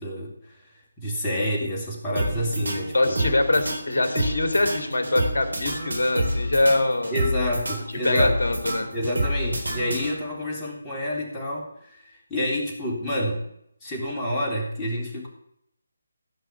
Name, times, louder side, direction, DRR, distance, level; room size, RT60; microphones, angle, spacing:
voice 1, 0.0-3.3 7.1-8.4 8.9-13.4 13.8-15.3, left 1 dB, 15° left, -4 dB, 3.6 m, -29 dB
sound 1, 2.2-10.5, right 1 dB, 75° right, 3.7 m, -29 dB
voice 2, 2.9-7.2 8.0-8.9, left 2 dB, 55° left, 7 dB, 2.7 m, -23 dB
16.0 x 5.8 x 8.3 m, 0.74 s
figure-of-eight pair, 150°, 0 cm